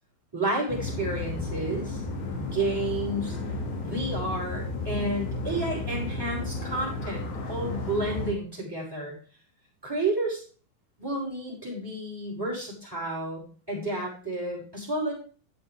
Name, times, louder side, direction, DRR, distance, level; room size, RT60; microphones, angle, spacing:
voice 1, 0.3-2.0 2.4-3.4 3.8-9.1 9.8-10.4 11.0-15.1, right 2 dB, 5° right, -4 dB, 5.9 m, -31 dB
sound 1, 0.7-8.3, left 2 dB, 65° left, 4.4 m, -33 dB
13.0 x 8.3 x 3.6 m, 0.39 s
omnidirectional pair, 5.7 m